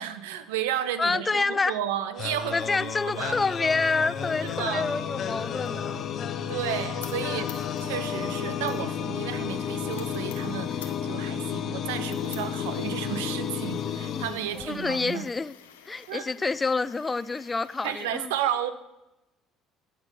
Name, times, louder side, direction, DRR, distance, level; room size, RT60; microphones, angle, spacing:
voice 1, 0.0-3.4 4.4-4.9 6.5-15.3 16.1-16.2 17.8-18.7, right 10 dB, 85° right, 11 dB, 0.6 m, -32 dB
voice 2, 1.0-1.7 2.5-6.0 14.6-15.5 15.9-18.3, left 4 dB, 25° left, 17 dB, 0.3 m, -27 dB
sound 1, 2.2-15.1, left 8 dB, 55° left, 0.7 m, -32 dB
sound 2, 2.5-18.1, left 8 dB, 90° left, 0.8 m, -52 dB
sound 3, 3.8-10.0, right 8 dB, 55° right, 1.5 m, -50 dB
9.6 x 6.0 x 5.8 m, 0.94 s
hypercardioid pair, 65°, 0 cm